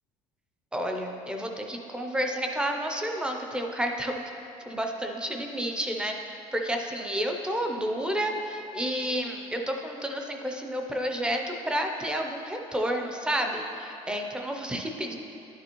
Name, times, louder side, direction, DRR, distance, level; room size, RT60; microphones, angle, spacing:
voice 1, 0.7-4.2 4.7-15.1, equal, 5° right, 3 dB, 0.4 m, -30 dB
11.0 x 6.8 x 2.9 m, 2.9 s
cardioid pair, 170°, 14 cm